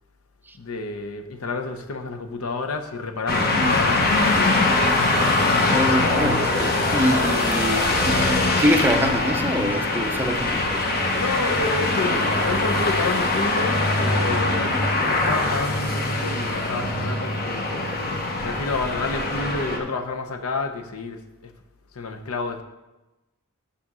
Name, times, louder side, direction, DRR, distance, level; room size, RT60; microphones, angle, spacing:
voice 1, 0.6-4.8 11.1-14.7 15.1-18.0 18.4-21.2 21.9-22.6, left 3 dB, 75° left, 6 dB, 0.8 m, -30 dB
sound 1, 3.3-19.8, left 2 dB, 45° left, 1.0 m, -22 dB
voice 2, 5.7-10.8, equal, 10° right, 5 dB, 0.5 m, -25 dB
6.3 x 5.7 x 6.0 m, 1.0 s
head